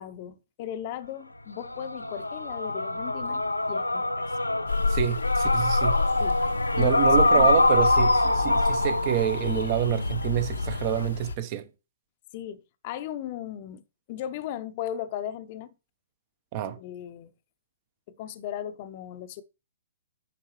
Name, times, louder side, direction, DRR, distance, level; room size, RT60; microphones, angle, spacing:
voice 1, 0.0-3.4 3.7-4.2 6.2-6.4 6.7-6.9 7.3-7.5 12.3-13.8 14.1-15.7 16.8-17.3 18.1-19.4, left 10 dB, 40° left, 0.8 m, -37 dB
sound 1, 1.6-11.1, left 2 dB, 85° left, 0.5 m, -25 dB
sound 2, 4.7-11.3, left 5 dB, 65° left, 0.9 m, -30 dB
voice 2, 4.9-6.0 6.8-11.7 16.5-16.8, right 12 dB, 35° right, 1.0 m, -27 dB
10.0 x 5.3 x 3.2 m
figure-of-eight pair, 120°, 0 cm